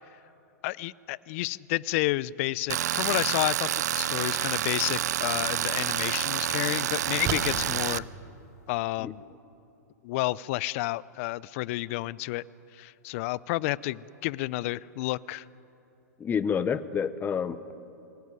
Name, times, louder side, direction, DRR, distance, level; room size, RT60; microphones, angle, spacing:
voice 1, 0.6-8.0 8.7-9.2 10.0-12.4 12.7-15.4, left 19 dB, 50° left, 22 dB, 0.6 m, -30 dB
Tools, 2.7-8.0, right 11 dB, 70° right, 0.6 m, -28 dB
sound 1, 5.7-8.8, right 6 dB, 35° right, 3.7 m, -38 dB
voice 2, 16.2-17.7, left 7 dB, 20° left, 14 dB, 0.9 m, -29 dB
25.5 x 17.5 x 9.7 m, 2.9 s
hypercardioid pair, 115°, 9 cm